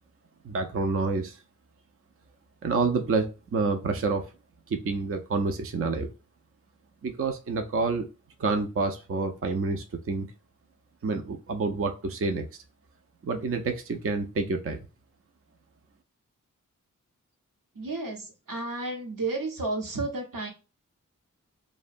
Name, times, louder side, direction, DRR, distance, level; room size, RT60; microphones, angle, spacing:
voice 1, 0.4-1.4 2.6-4.2 4.7-6.1 7.0-8.1 8.4-10.3 11.0-12.6 13.2-14.8, right 4 dB, 45° right, 5 dB, 0.5 m, -28 dB
voice 2, 17.8-20.5, right 2 dB, 85° right, 1 dB, 0.9 m, -32 dB
2.7 x 2.1 x 2.4 m, 0.31 s
cardioid pair, 45°, 32 cm